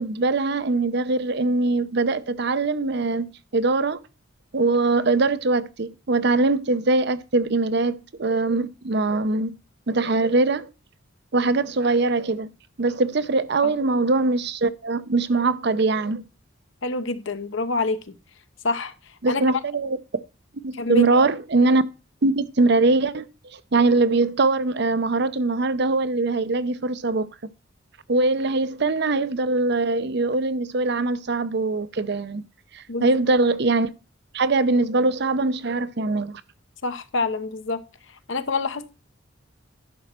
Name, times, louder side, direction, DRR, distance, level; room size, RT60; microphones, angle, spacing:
voice 1, 0.0-4.0 4.5-9.5 9.9-10.7 11.3-12.5 12.8-16.2 19.2-20.0 20.6-21.8 22.2-23.3 23.5-27.3 28.1-32.4 32.7-33.9 34.3-36.4, right 3 dB, 55° right, 0.6 m, -22 dB
voice 2, 16.8-18.2 18.6-18.9 19.3-19.4 20.7-21.3 32.9-33.2 36.8-37.8 38.3-38.9, left 3 dB, 65° left, 0.9 m, -27 dB
11.0 x 6.3 x 4.3 m
head